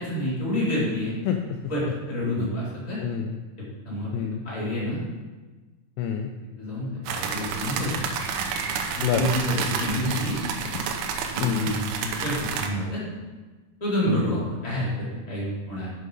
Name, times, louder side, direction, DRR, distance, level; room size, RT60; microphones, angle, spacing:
voice 1, 0.0-1.1 1.7-3.0 3.8-5.0 6.6-7.9 8.9-10.4 11.3-13.0 13.8-15.9, left 1 dB, 10° left, -8 dB, 2.2 m, -28 dB
voice 2, 1.3-1.6 3.0-3.4 4.1-4.4 6.0-6.3 9.0-9.3 11.4-11.7 14.1-14.2, left 8 dB, 90° left, 4 dB, 2.4 m, -27 dB
sound 1, 7.1-12.7, right 6 dB, 85° right, 3.0 m, -30 dB
7.7 x 6.4 x 5.2 m, 1.3 s
omnidirectional pair, 5.5 m